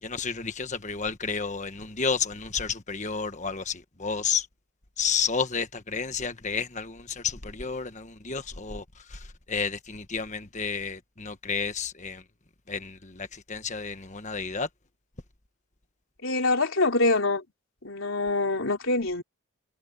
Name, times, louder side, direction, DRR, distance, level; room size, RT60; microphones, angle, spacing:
voice 1, 0.0-4.5 5.0-12.2 12.7-14.7, left 5 dB, 35° left, 1.4 m, -31 dB
voice 2, 16.2-17.4 17.8-19.2, left 2 dB, 65° left, 3.7 m, -25 dB
head